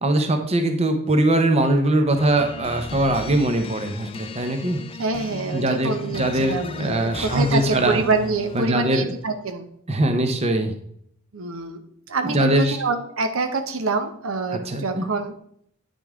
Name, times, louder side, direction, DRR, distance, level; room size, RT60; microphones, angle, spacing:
voice 1, 0.0-4.8 5.5-8.0 8.5-9.1 9.9-10.7 12.2-12.8 14.5-15.1, right 1 dB, 30° right, 6 dB, 0.7 m, -21 dB
sound 1, 2.2-8.9, left 4 dB, 25° left, 0.4 m, -36 dB
voice 2, 5.0-9.7 11.3-11.8 12.1-15.3, right 3 dB, 70° right, 8 dB, 0.8 m, -26 dB
9.1 x 5.3 x 3.6 m, 0.67 s
head